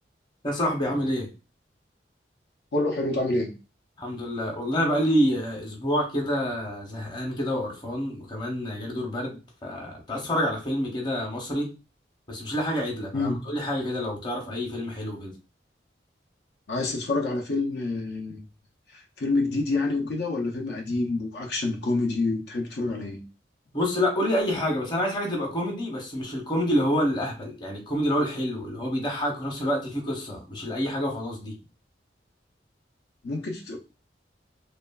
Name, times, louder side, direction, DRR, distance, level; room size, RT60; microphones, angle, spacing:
voice 1, 0.4-1.3 4.0-11.7 12.3-15.3 23.7-31.5, equal, 25° left, 0.7 m, -27 dB
voice 2, 2.7-3.5 13.1-13.5 16.7-18.4 18.9-23.2 33.2-33.8, left 2 dB, 65° left, 0.5 m, -27 dB
3.0 x 2.4 x 2.2 m
head